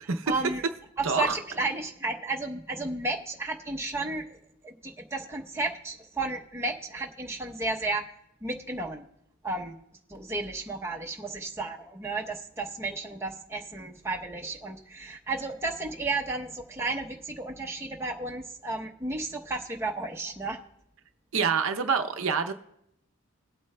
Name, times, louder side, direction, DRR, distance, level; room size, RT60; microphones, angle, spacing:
voice 1, 0.3-0.6 1.0-4.4 4.6-8.0 8.4-9.1 9.4-9.7 10.1-20.6, right 2 dB, 10° right, 0 dB, 0.7 m, -33 dB
voice 2, 1.0-1.4 21.3-22.5, right 5 dB, 65° right, 6 dB, 0.6 m, -26 dB
20.5 x 8.3 x 2.2 m, 0.77 s
head